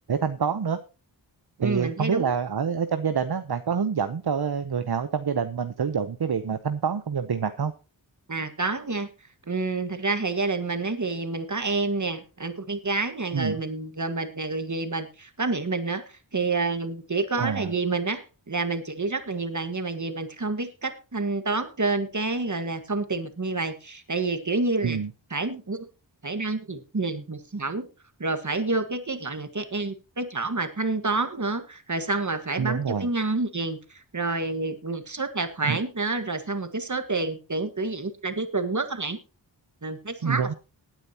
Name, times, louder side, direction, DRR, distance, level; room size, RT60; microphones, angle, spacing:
voice 1, 0.1-0.8 1.6-7.7 13.3-13.6 17.4-17.7 24.8-25.1 32.6-33.1 35.6-35.8 40.2-40.5, right 6 dB, 55° right, 10 dB, 0.9 m, -27 dB
voice 2, 1.6-2.3 8.3-9.1 9.5-25.0 25.3-25.9 26.2-27.9 28.2-39.2 39.8-40.5, right 3 dB, 40° right, 8 dB, 1.7 m, -28 dB
19.0 x 9.1 x 2.9 m, 0.32 s
cardioid pair, 40°, 45 cm